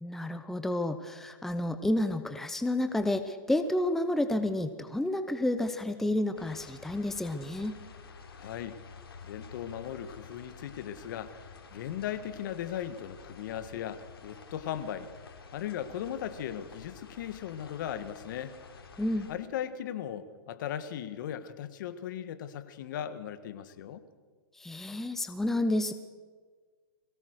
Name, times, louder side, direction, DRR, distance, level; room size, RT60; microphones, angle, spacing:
voice 1, 0.0-7.8 19.0-19.3 24.6-25.9, left 1 dB, 5° left, 9 dB, 0.8 m, -30 dB
sound 1, 6.4-19.3, left 5 dB, 85° left, 3.7 m, -50 dB
voice 2, 8.3-8.8 9.2-15.1 15.5-18.5 19.3-24.0, left 10 dB, 55° left, 12 dB, 1.6 m, -38 dB
22.0 x 17.5 x 6.6 m, 1.5 s
hypercardioid pair, 135°, 12 cm